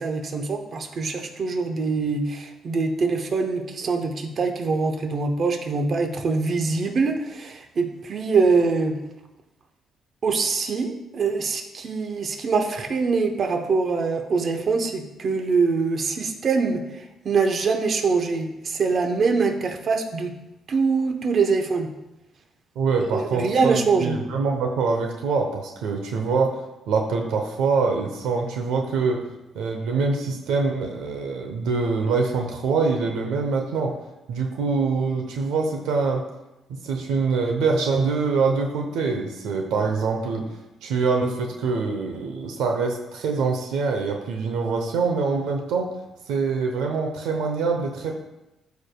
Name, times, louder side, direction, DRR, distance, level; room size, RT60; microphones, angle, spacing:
voice 1, 0.0-9.0 10.2-20.3 20.7-21.9 23.0-24.2, right 4 dB, 50° right, 5 dB, 0.9 m, -24 dB
voice 2, 22.8-26.5 26.9-29.2 29.5-33.9 34.3-36.2 36.7-40.4 40.8-45.9 46.3-48.2, right 4 dB, 90° right, 3 dB, 0.8 m, -24 dB
12.5 x 4.7 x 2.3 m, 0.96 s
cardioid pair, 90°, 0 cm